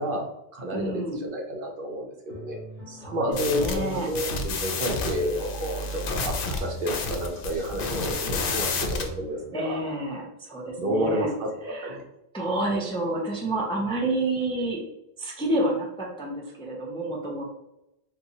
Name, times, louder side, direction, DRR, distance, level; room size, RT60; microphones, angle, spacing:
voice 1, 0.0-2.6 3.1-9.8 10.8-12.0, equal, 60° right, 1 dB, 0.7 m, -30 dB
voice 2, 0.7-1.2 2.9-4.1 9.5-11.3 11.6-11.9 12.3-14.8 15.2-17.4, right 1 dB, 5° left, -2 dB, 0.4 m, -29 dB
sound 1, 2.3-10.2, right 2 dB, 45° right, 1.0 m, -43 dB
sound 2, 3.3-9.1, left 3 dB, 60° left, 0.7 m, -30 dB
4.1 x 2.2 x 2.7 m, 0.86 s
omnidirectional pair, 1.1 m